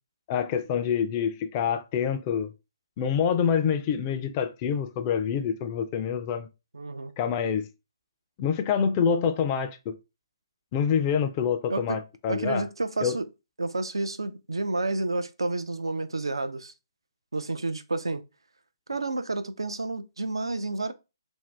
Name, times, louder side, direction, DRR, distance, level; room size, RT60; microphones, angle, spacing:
voice 1, 0.3-2.5 3.0-6.5 7.2-7.7 8.4-10.0 10.7-12.6 13.0-13.2, left 7 dB, 25° left, 0.4 m, -26 dB
voice 2, 6.7-7.1 11.7-12.0 12.3-13.3 13.6-16.7 17.3-18.2 18.9-20.9, right 2 dB, 80° right, 0.4 m, -30 dB
2.6 x 2.2 x 3.3 m
figure-of-eight pair, 140°, 3 cm